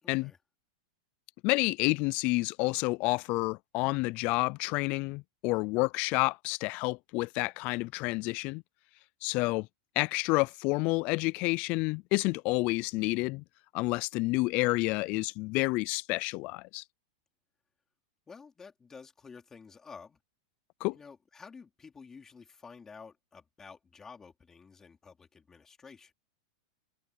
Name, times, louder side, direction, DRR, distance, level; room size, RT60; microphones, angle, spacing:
voice 1, 0.0-0.4 18.3-20.2 20.9-26.1, left 5 dB, 15° left, 4.1 m, -51 dB
voice 2, 1.4-8.6 9.2-9.7 10.0-13.4 13.7-16.8 20.8-21.0, left 24 dB, 45° left, 0.4 m, -29 dB
supercardioid pair, 135°, 3 cm